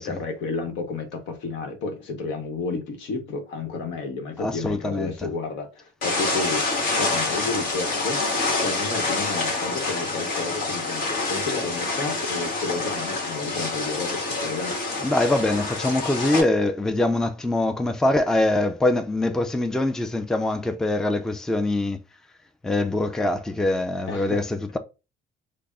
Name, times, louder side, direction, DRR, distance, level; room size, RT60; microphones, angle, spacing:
voice 1, 0.0-14.8 24.1-24.4, left 4 dB, 80° left, 1.0 m, -32 dB
voice 2, 4.4-5.1 15.0-22.0 22.6-24.8, left 2 dB, 5° left, 0.3 m, -23 dB
sound 1, 6.0-16.4, left 3 dB, 55° left, 1.3 m, -27 dB
3.4 x 2.0 x 3.7 m
cardioid pair, 110°, 19 cm